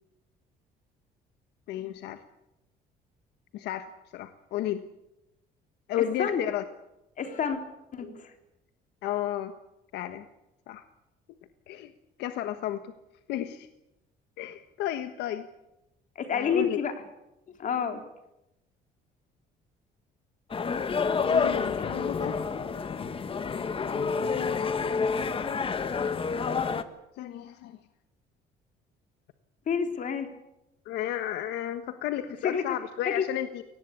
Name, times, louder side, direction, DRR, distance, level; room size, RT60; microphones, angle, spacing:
voice 1, 1.7-2.2 3.5-4.8 5.9-6.6 9.0-9.5 9.9-10.2 10.7-10.9 11.7-11.9 12.2-12.9 13.3-13.7 14.4-15.5 16.3-16.8 21.3-22.4 23.9-24.5 27.1-27.8 30.8-33.6, left 12 dB, 85° left, 9 dB, 1.4 m, -33 dB
voice 2, 7.2-7.6 7.9-8.3 16.2-16.9 17.6-18.0 29.7-30.3 32.4-32.6 33.1-33.2, left 7 dB, 50° left, 6 dB, 3.6 m, -28 dB
sound 1, 20.5-26.8, left 5 dB, 30° left, 1.6 m, -28 dB
23.0 x 19.0 x 8.4 m, 0.91 s
cardioid pair, 110°, 17 cm